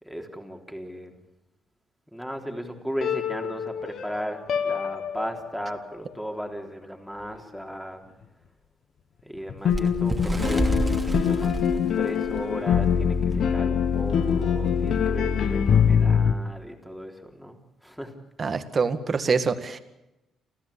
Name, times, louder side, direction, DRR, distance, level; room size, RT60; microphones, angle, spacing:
voice 1, 0.0-1.1 2.1-8.0 9.2-10.9 11.3-17.6 17.8-18.1, equal, ahead, 3 dB, 3.7 m, -36 dB
sound 1, 3.0-5.8 9.4-16.3, left 7 dB, 65° left, 1.4 m, -24 dB
Bird, 9.7-12.9 13.3-13.5 13.8-14.0 14.8-14.9, right 1 dB, 15° right, 2.8 m, -28 dB
voice 2, 18.4-19.8, right 5 dB, 40° right, 9 dB, 1.9 m, -25 dB
29.0 x 14.0 x 8.6 m, 0.93 s
cardioid pair, 90°, 0 cm